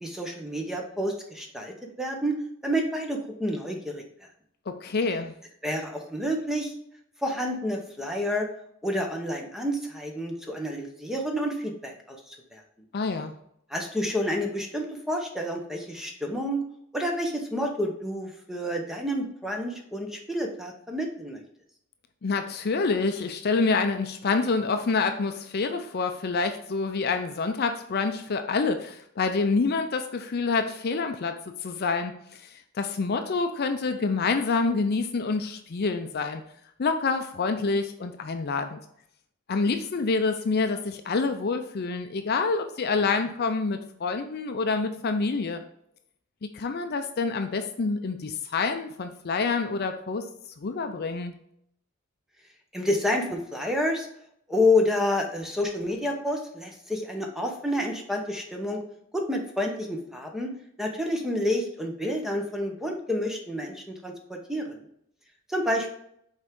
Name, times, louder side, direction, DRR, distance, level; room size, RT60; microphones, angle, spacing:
voice 1, 0.0-2.3 2.6-4.0 5.6-6.7 7.2-8.5 8.8-12.6 13.7-16.6 16.9-21.4 52.7-54.1 54.5-58.8 59.1-60.5 60.8-64.8 65.5-65.9, left 1 dB, ahead, 1 dB, 0.9 m, -29 dB
voice 2, 4.7-5.3 12.9-13.3 22.2-31.3 31.6-36.4 36.8-38.8 39.5-45.6 46.5-50.2 50.6-51.3, left 4 dB, 50° left, 7 dB, 0.5 m, -27 dB
6.3 x 4.4 x 3.6 m, 0.72 s
head